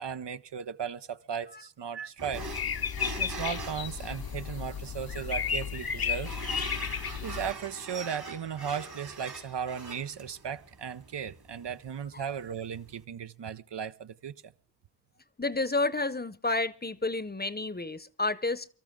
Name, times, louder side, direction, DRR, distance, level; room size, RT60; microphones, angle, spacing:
voice 1, 0.0-2.5 3.2-6.4 6.8-6.9 7.2-14.5, right 7 dB, 85° right, 0.7 m, -36 dB
sound 1, 2.2-13.0, right 2 dB, 65° right, 3.2 m, -44 dB
sound 2, 2.3-7.5, left 7 dB, 60° left, 0.8 m, -33 dB
voice 2, 15.4-18.7, left 2 dB, 25° left, 0.8 m, -30 dB
24.0 x 13.5 x 3.7 m
wide cardioid pair, 70°, 41 cm